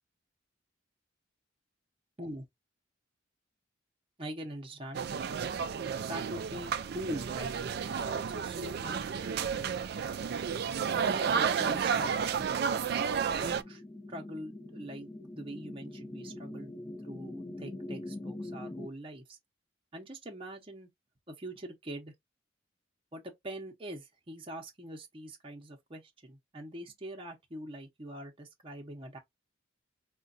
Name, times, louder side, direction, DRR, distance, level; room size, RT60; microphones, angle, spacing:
voice 1, 4.2-5.0 6.1-7.5 7.9-9.7 10.9-12.4 13.4-13.8 14.1-16.7 17.0-19.4 19.9-20.9 21.3-22.1 23.1-29.2, right 1 dB, 25° right, 0.7 m, -43 dB
sound 1, 4.9-13.6, right 6 dB, 55° right, 0.3 m, -32 dB
sound 2, 11.7-18.9, left 1 dB, 20° left, 0.6 m, -44 dB
4.9 x 2.2 x 2.5 m
head